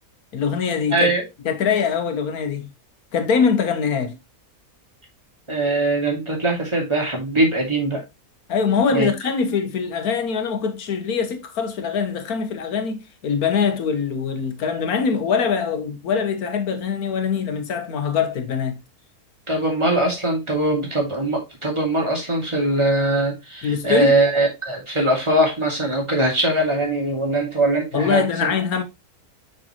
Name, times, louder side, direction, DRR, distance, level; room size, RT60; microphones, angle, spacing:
voice 1, 0.3-1.1 1.4-2.7 3.1-4.2 8.5-18.8 23.6-24.1 27.9-28.8, left 6 dB, 80° left, 1.6 m, -23 dB
voice 2, 0.9-1.2 5.5-8.0 8.9-9.1 19.5-28.5, right 1 dB, 20° right, 2.6 m, -21 dB
6.2 x 6.2 x 3.0 m
omnidirectional pair, 1.6 m